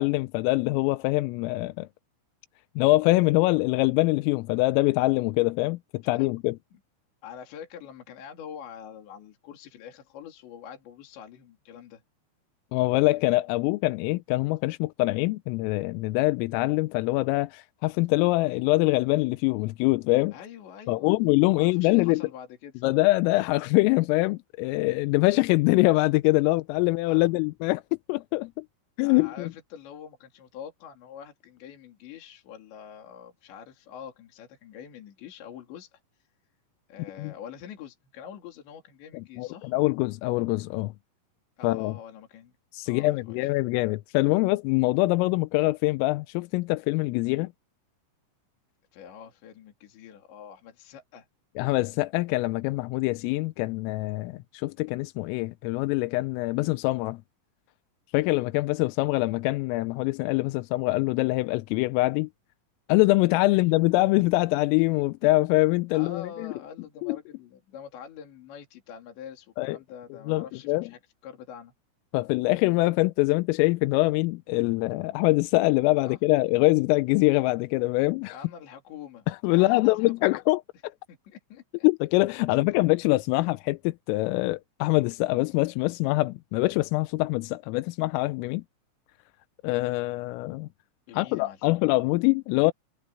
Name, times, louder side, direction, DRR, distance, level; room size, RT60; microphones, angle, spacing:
voice 1, 0.0-1.9 2.8-6.6 12.7-20.3 20.9-22.2 22.8-27.8 28.1-28.6 29.0-29.5 37.2-37.3 39.1-40.9 41.6-41.9 42.7-47.5 51.6-57.2 58.1-62.3 62.9-66.5 67.0-67.2 69.6-69.8 70.3-70.9 72.1-78.3 79.3-80.6 81.8-88.6 89.6-90.7 91.1-92.7, left 21 dB, 90° left, 3.3 m, -24 dB
voice 2, 7.2-12.0 20.3-22.8 27.1-27.4 29.0-36.0 36.9-39.7 41.6-42.5 42.9-43.4 48.9-51.3 63.5-63.7 65.9-71.7 76.0-76.2 78.3-80.4 81.1-81.9 91.1-91.7, left 8 dB, 65° left, 5.1 m, -45 dB
omnidirectional pair, 5.8 m